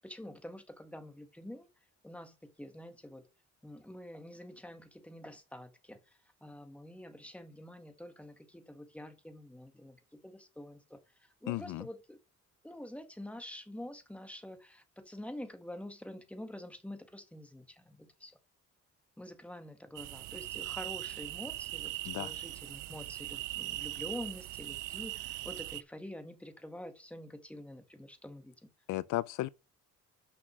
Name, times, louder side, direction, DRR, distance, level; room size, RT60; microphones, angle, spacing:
voice 1, 0.0-1.7 2.0-3.3 3.6-12.2 12.6-18.3 19.2-28.7, left 1 dB, 5° left, 1.8 m, -47 dB
voice 2, 11.5-11.9 22.1-22.3 28.9-29.5, left 17 dB, 80° left, 0.5 m, -34 dB
sound 1, 19.9-25.8, right 17 dB, 85° right, 0.5 m, -40 dB
6.2 x 5.9 x 6.2 m
cardioid pair, 90°, 30 cm